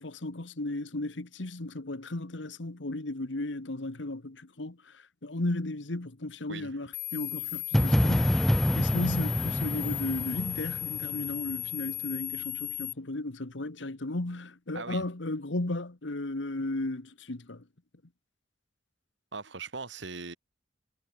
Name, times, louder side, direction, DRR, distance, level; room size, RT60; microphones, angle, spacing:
voice 1, 0.0-8.4 8.7-17.6, left 2 dB, 90° left, 1.5 m, -35 dB
sound 1, 6.9-12.9, left 16 dB, 40° left, 0.5 m, -36 dB
sound 2, 7.7-11.6, equal, ahead, 0.7 m, -27 dB
voice 2, 19.3-20.4, right 4 dB, 80° right, 2.0 m, -40 dB
head